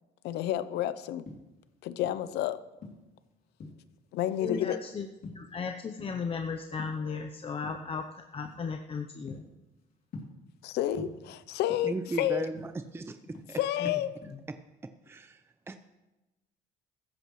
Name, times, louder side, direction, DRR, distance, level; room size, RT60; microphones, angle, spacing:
voice 1, 0.2-1.3 1.8-2.6 4.1-4.8 10.6-12.5 13.6-14.1, left 12 dB, 80° left, 14 dB, 0.7 m, -30 dB
sound 1, 1.3-2.3 2.8-4.0 4.4-4.8 5.2-6.4 6.6-7.2 7.6-7.9 8.4-8.7 9.0-10.7 11.0-12.1 12.4-13.9 14.2-14.5, left 3 dB, 60° left, 2.8 m, -46 dB
voice 2, 4.4-9.4 13.8-13.9, left 5 dB, 35° left, 4 dB, 0.8 m, -36 dB
voice 3, 11.8-13.2 13.5-13.6 15.1-15.8, right 3 dB, 15° right, 8 dB, 0.6 m, -36 dB
16.0 x 14.0 x 3.2 m, 1.0 s
cardioid pair, 110°, 17 cm